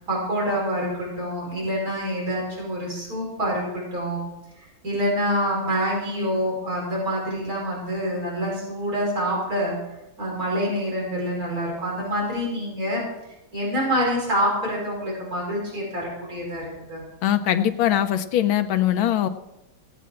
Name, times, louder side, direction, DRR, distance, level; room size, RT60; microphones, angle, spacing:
voice 1, 0.0-4.3 4.6-9.7 10.2-13.1 13.5-17.0, equal, 45° right, -4 dB, 5.4 m, -26 dB
voice 2, 17.2-19.3, left 11 dB, 85° left, 10 dB, 1.6 m, -21 dB
18.0 x 8.4 x 4.4 m, 0.92 s
omnidirectional pair, 2.2 m